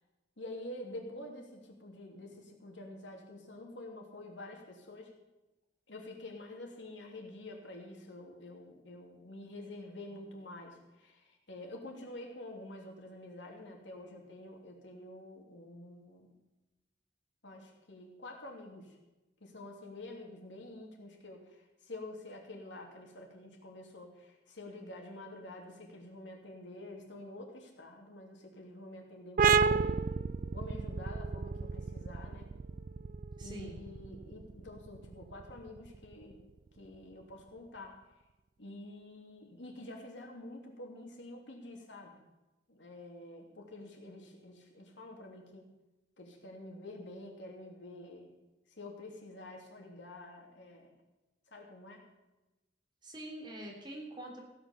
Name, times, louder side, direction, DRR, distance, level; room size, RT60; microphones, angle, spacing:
voice 1, 0.4-5.1 5.9-16.3 17.4-19.0 19.4-30.0 30.5-32.5 33.4-36.4 36.8-38.0 38.6-42.2 42.7-45.7 46.2-48.3 48.7-50.9 51.5-52.1, left 1 dB, 90° left, 1 dB, 3.0 m, -48 dB
sound 1, 29.4-36.7, right 5 dB, 50° right, 0.4 m, -32 dB
voice 2, 33.4-33.8 53.0-54.4, right 1 dB, 25° right, -1 dB, 3.3 m, -44 dB
16.0 x 9.1 x 7.0 m, 1.0 s
head